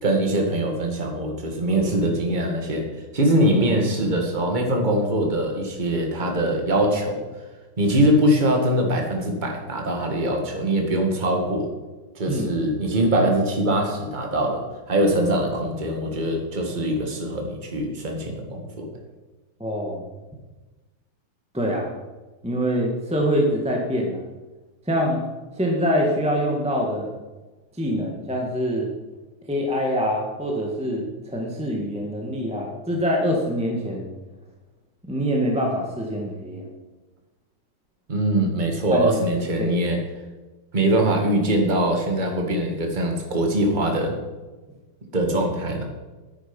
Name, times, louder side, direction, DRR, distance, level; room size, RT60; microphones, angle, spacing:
voice 1, 0.0-2.9 3.1-7.2 7.8-11.7 12.2-18.9 38.1-40.0 40.7-44.1 45.1-45.8, right 1 dB, 25° right, 2 dB, 1.8 m, -22 dB
voice 2, 19.6-20.0 21.5-21.9 22.4-24.2 24.9-25.2 25.6-27.1 27.8-28.9 29.5-34.1 35.0-36.6 38.9-39.1 39.6-39.8, equal, 5° right, 0 dB, 1.3 m, -24 dB
10.0 x 9.5 x 5.3 m, 1.2 s
omnidirectional pair, 2.3 m